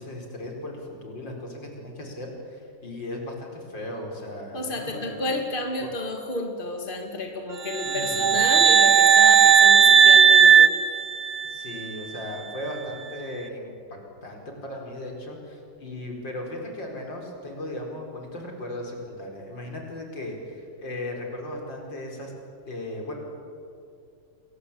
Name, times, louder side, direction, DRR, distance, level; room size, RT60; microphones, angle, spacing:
voice 1, 0.0-5.4 5.8-5.9 7.8-8.4 11.4-22.3 22.7-23.1, left 1 dB, 85° left, 1 dB, 5.4 m, -37 dB
voice 2, 4.5-10.7, left 2 dB, 30° left, 3 dB, 2.8 m, -31 dB
sound 1, 7.7-11.7, right 7 dB, 80° right, 0.4 m, -16 dB
29.0 x 22.0 x 8.7 m, 2.5 s
omnidirectional pair, 2.0 m